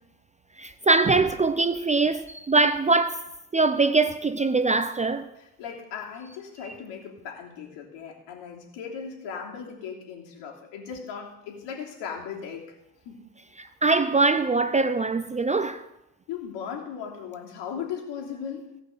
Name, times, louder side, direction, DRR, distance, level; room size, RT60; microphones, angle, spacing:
voice 1, 0.6-3.3 3.5-5.3 13.6-15.8, right 3 dB, 15° right, 0.5 m, -22 dB
voice 2, 5.4-12.8 13.0-13.3 16.3-18.8, left 7 dB, 70° left, 3.2 m, -37 dB
17.0 x 5.8 x 6.7 m
supercardioid pair, 85°, 45 cm